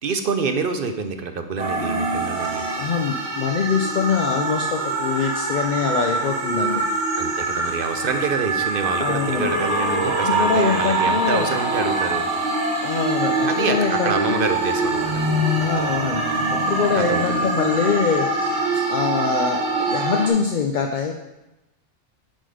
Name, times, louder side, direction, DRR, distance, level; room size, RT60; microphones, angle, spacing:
voice 1, 0.0-2.7 7.1-12.3 13.4-15.2 16.9-17.5, right 5 dB, 55° right, 7 dB, 0.7 m, -27 dB
sound 1, 1.6-20.3, right 2 dB, 35° right, 1.2 m, -24 dB
voice 2, 2.8-6.8 9.0-9.5 10.0-11.5 12.8-14.5 15.6-18.5 18.9-19.6 19.9-21.1, left 6 dB, 55° left, 3 dB, 0.6 m, -24 dB
10.0 x 3.9 x 4.9 m, 0.99 s
omnidirectional pair, 1.3 m